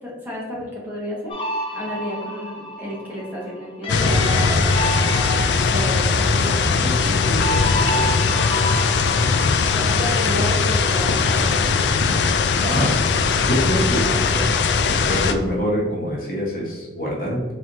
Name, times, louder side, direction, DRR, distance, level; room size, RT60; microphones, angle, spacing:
voice 1, 0.0-4.9 5.6-8.5 8.9-11.7, equal, 10° right, -6 dB, 1.1 m, -32 dB
sound 1, 1.3-10.7, equal, 30° left, 0.7 m, -30 dB
sound 2, 3.9-15.3, left 4 dB, 70° left, 0.3 m, -19 dB
voice 2, 13.4-14.5 15.1-17.4, equal, 50° left, -4 dB, 1.1 m, -24 dB
4.2 x 3.3 x 2.7 m, 1.4 s
head